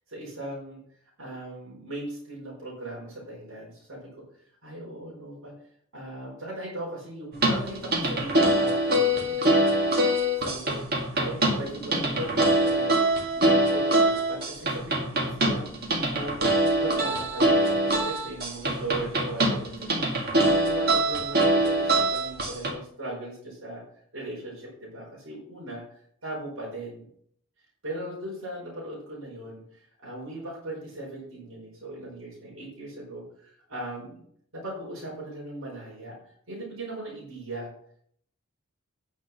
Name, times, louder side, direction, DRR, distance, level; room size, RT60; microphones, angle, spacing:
voice 1, 0.1-0.8 1.2-4.1 4.6-5.5 5.9-9.8 10.3-10.8 11.1-15.7 16.1-23.8 24.1-25.8 26.2-27.1 27.8-34.2 34.5-36.2 36.5-37.7, right 1 dB, 75° right, -5 dB, 4.9 m, -38 dB
sound 1, 7.3-22.7, right 1 dB, 45° right, 1.9 m, -24 dB
9.7 x 6.4 x 6.0 m, 0.65 s
head